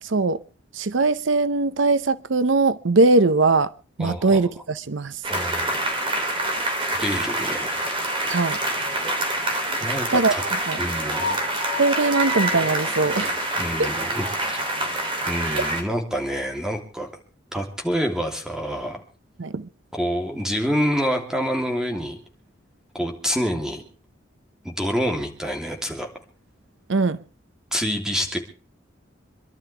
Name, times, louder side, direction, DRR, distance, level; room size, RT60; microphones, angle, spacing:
voice 1, 0.0-0.4 0.7-3.7 4.0-5.2 8.3-8.6 10.1-10.8 11.8-13.5 13.8-13.9 15.4-15.6 19.4-19.7 26.9-27.2, right 3 dB, 80° right, 0.7 m, -21 dB
voice 2, 4.0-4.4 5.3-6.0 7.0-7.9 9.8-10.4 10.8-11.4 13.6-14.6 15.3-17.1 17.5-19.0 19.9-22.2 22.9-23.8 24.6-26.1 27.7-28.4, equal, 5° right, 3.0 m, -27 dB
sound 1, 5.2-15.8, right 1 dB, 25° right, 3.2 m, -26 dB
27.0 x 12.0 x 3.4 m
head